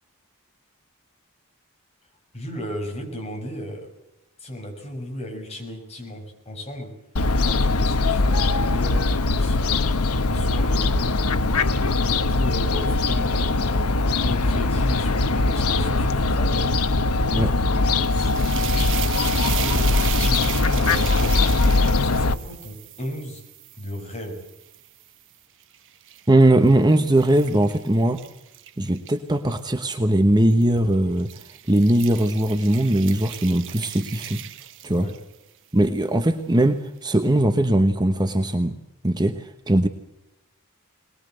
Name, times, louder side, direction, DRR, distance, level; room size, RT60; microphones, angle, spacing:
voice 1, 2.3-3.9 4.4-6.9 7.3-9.8 10.3-17.0 17.4-21.6 22.0-23.4 23.7-24.5 34.9-35.2 39.8-39.9, left 1 dB, 30° left, 2 dB, 6.4 m, -35 dB
Fowl, 7.2-22.3, left 3 dB, 85° left, 1.0 m, -21 dB
sound 1, 17.9-25.1 25.6-29.6 30.5-30.8 31.2-35.3, right 12 dB, 60° right, 1.1 m, -36 dB
voice 2, 26.3-28.2 28.8-31.3 31.7-34.4 34.8-35.1 35.7-38.8 39.0-39.9, right 1 dB, 20° right, 7 dB, 1.1 m, -20 dB
22.0 x 20.5 x 7.8 m, 0.91 s
head